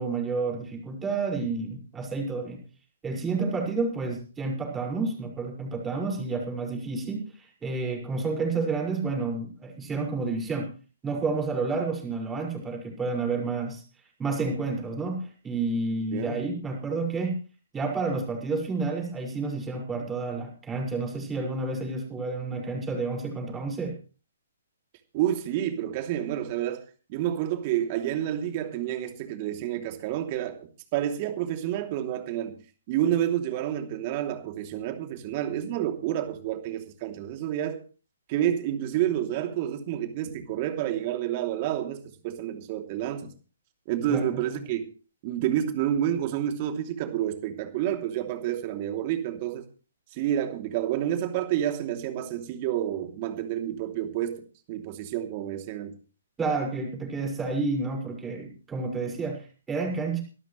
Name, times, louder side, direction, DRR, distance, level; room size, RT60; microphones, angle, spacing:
voice 1, 0.0-2.6 3.0-10.7 11.0-13.8 14.2-17.4 17.7-24.0 44.1-44.4 56.4-60.2, right 3 dB, 10° right, 1 dB, 5.8 m, -30 dB
voice 2, 25.1-26.8 27.1-32.6 32.9-37.8 38.3-43.3 43.9-44.8 45.2-49.6 50.1-54.4 54.7-55.9, right 11 dB, 35° right, 5 dB, 3.0 m, -29 dB
24.0 x 12.5 x 3.3 m, 0.37 s
figure-of-eight pair, 135°, 0 cm